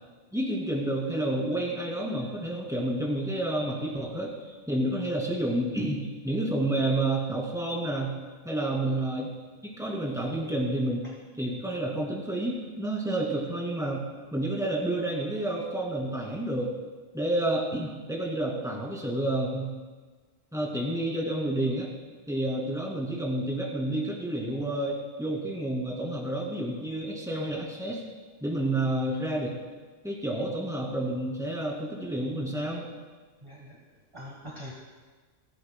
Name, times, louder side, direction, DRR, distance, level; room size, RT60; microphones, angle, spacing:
voice 1, 0.3-8.2 8.4-9.3 9.6-11.0 11.4-14.1 14.3-16.7 17.1-19.7 20.5-21.9 22.3-28.0 28.4-29.6 30.0-32.9, right 1 dB, 5° right, -2 dB, 2.3 m, -29 dB
voice 2, 30.4-30.8 33.4-33.8 34.1-34.7, equal, 25° right, -3 dB, 1.5 m, -44 dB
27.5 x 9.9 x 2.3 m, 1.4 s
omnidirectional pair, 1.3 m